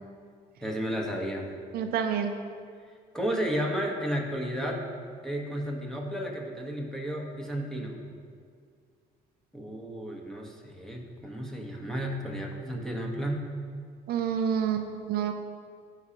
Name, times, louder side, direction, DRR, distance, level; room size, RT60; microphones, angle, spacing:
voice 1, 0.6-1.5 2.8-4.8 5.2-8.0 9.5-13.4, equal, 5° left, -1 dB, 1.3 m, -33 dB
voice 2, 1.7-2.3 14.1-15.3, right 8 dB, 65° right, 6 dB, 0.5 m, -28 dB
14.0 x 4.9 x 2.9 m, 2.1 s
cardioid pair, 110°, 17 cm